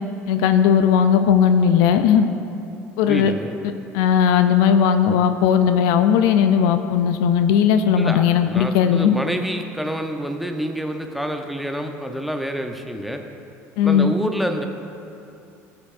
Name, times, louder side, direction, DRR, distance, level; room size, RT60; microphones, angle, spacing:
voice 1, 0.3-2.3 3.0-3.3 3.9-9.2 13.8-14.1, left 8 dB, 75° left, 9 dB, 0.4 m, -17 dB
voice 2, 3.0-3.5 8.0-13.2 13.8-14.7, equal, ahead, 4 dB, 0.8 m, -27 dB
15.5 x 7.0 x 2.6 m, 2.7 s
hypercardioid pair, 70°, 7 cm